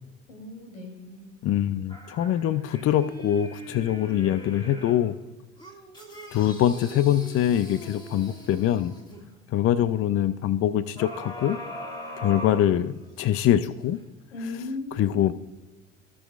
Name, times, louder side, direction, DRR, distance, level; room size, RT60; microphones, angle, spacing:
voice 1, 0.3-1.3 14.3-15.3, left 3 dB, 85° left, 1 dB, 3.0 m, -37 dB
voice 2, 1.4-5.2 6.3-8.9 9.5-11.6 12.2-14.0 15.0-15.3, left 11 dB, 40° left, 15 dB, 0.4 m, -24 dB
sound 1, 1.9-5.1 5.6-9.2 11.0-13.3 13.8-13.9, equal, 10° left, 2.4 m, -41 dB
17.5 x 6.2 x 2.4 m, 1.2 s
hypercardioid pair, 65°, 37 cm